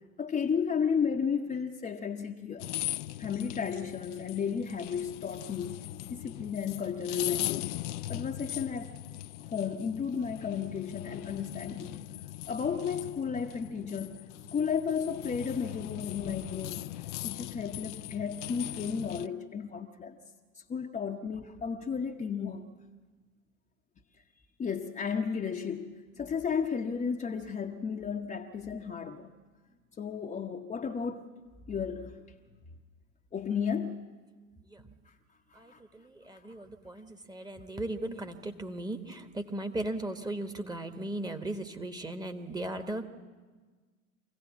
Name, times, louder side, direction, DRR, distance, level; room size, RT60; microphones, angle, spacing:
voice 1, 0.2-2.7 3.2-5.8 6.1-7.7 8.1-9.0 9.4-12.0 12.5-16.8 17.2-20.2 20.7-22.7 24.6-29.3 30.0-31.2 31.7-32.2 33.3-34.1 35.7-35.8 36.3-36.4, left 6 dB, 15° left, 0.9 m, -33 dB
sound 1, 2.6-19.3, left 15 dB, 55° left, 0.6 m, -40 dB
voice 2, 35.5-43.1, right 1 dB, 10° right, 1.3 m, -37 dB
25.0 x 16.5 x 7.3 m
figure-of-eight pair, 80°, 42 cm